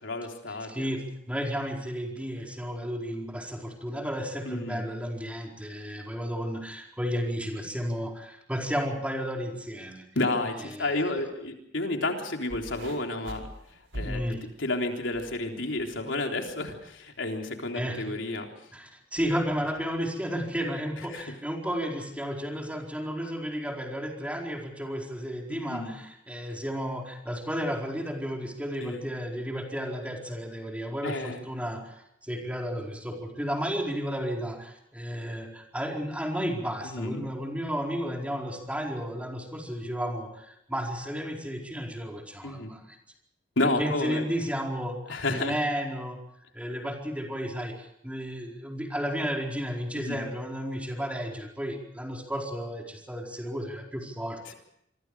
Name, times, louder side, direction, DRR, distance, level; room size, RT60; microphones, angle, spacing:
voice 1, 0.0-0.9 4.5-4.8 10.2-13.5 13.9-14.2 14.6-18.5 21.1-21.2 25.5-25.9 28.8-29.0 31.0-31.4 36.8-37.3 42.4-42.7 43.6-44.2 45.1-45.5 50.0-50.2, left 2 dB, 85° left, 2 dB, 3.8 m, -31 dB
voice 2, 0.7-10.0 10.6-11.1 14.0-14.4 17.7-18.1 18.7-32.0 32.2-43.0 43.6-46.2 46.5-54.5, equal, 5° right, 0 dB, 4.6 m, -33 dB
sound 1, 12.5-15.3 15.7-16.1 16.9-17.0, equal, 85° right, 5.1 m, -41 dB
27.0 x 24.5 x 4.9 m, 0.76 s
head